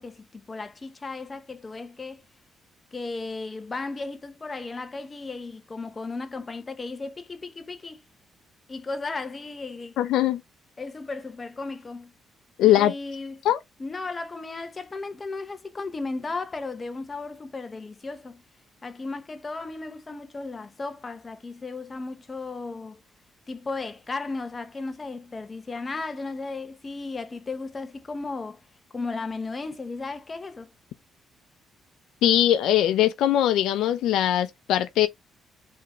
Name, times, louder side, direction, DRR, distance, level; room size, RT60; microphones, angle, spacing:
voice 1, 0.0-2.2 2.9-8.0 8.7-10.0 10.8-12.1 12.6-13.4 13.8-18.4 18.8-23.0 23.5-28.6 28.9-30.7, left 3 dB, 30° left, 0.9 m, -35 dB
voice 2, 10.0-10.4 12.6-12.9 13.4-13.6 32.2-35.1, left 12 dB, 85° left, 0.6 m, -21 dB
4.8 x 3.6 x 3.0 m
cardioid pair, 90°, 0 cm